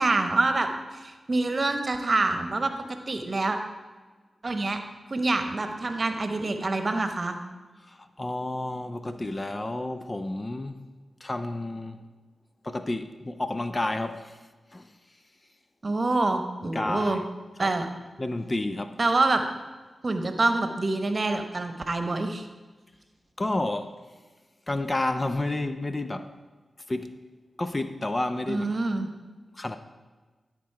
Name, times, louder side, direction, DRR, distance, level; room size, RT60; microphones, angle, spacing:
voice 1, 0.0-2.7 3.1-3.6 4.4-4.8 5.1-7.4 15.8-17.2 17.6-17.9 19.0-19.4 20.0-22.4 28.5-29.1, right 2 dB, 50° right, 7 dB, 1.0 m, -26 dB
voice 2, 7.8-10.8 11.2-12.0 12.6-14.4 14.7-14.9 16.6-17.2 17.6-17.7 18.2-19.0 23.4-24.0 24.7-26.3 26.9-27.2 27.6-28.8 29.5-29.8, left 2 dB, 35° left, 9 dB, 0.6 m, -30 dB
11.5 x 5.3 x 4.7 m, 1.3 s
cardioid pair, 45°, 0 cm